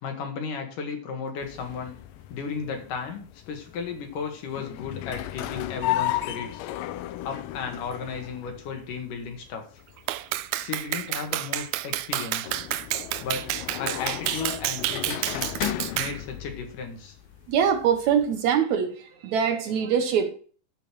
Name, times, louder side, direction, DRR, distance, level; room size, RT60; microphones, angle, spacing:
voice 1, 0.0-2.0 2.3-6.7 7.2-9.6 10.6-12.6 13.2-13.4 13.8-15.6 15.9-17.1, left 5 dB, 70° left, 3.3 m, -34 dB
sound 1, 1.4-18.5, left 13 dB, 85° left, 2.3 m, -35 dB
Clapping, 10.1-16.2, right 15 dB, 85° right, 1.6 m, -29 dB
voice 2, 17.5-20.3, right 8 dB, 70° right, 2.0 m, -23 dB
12.0 x 5.2 x 6.2 m
omnidirectional pair, 3.8 m